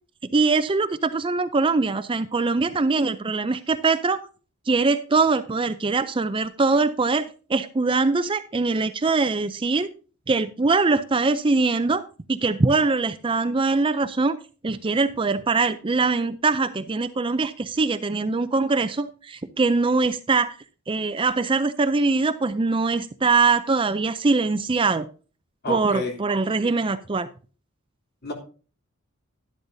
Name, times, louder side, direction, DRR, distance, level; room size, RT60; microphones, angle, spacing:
voice 1, 0.3-4.2 4.7-9.9 10.3-14.4 14.6-20.6 20.9-25.0 25.7-27.3, right 3 dB, 25° right, 11 dB, 0.5 m, -22 dB
voice 2, 25.6-26.1 28.2-28.3, left 2 dB, 50° left, 2 dB, 3.1 m, -29 dB
12.0 x 11.5 x 2.7 m, 0.37 s
head